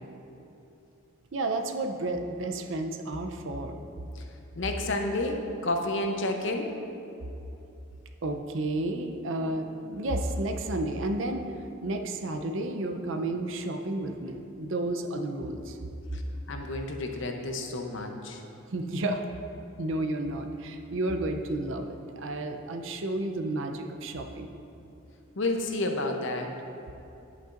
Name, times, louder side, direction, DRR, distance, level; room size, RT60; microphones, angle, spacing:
voice 1, 1.3-3.8 8.2-11.4 11.8-15.8 18.7-19.2 19.8-24.6, right 2 dB, 65° right, 5 dB, 0.6 m, -31 dB
voice 2, 4.5-6.7 16.1-16.2 16.5-18.4 25.4-26.5, left 2 dB, 65° left, 3 dB, 0.7 m, -30 dB
10.0 x 8.4 x 2.5 m, 2.7 s
head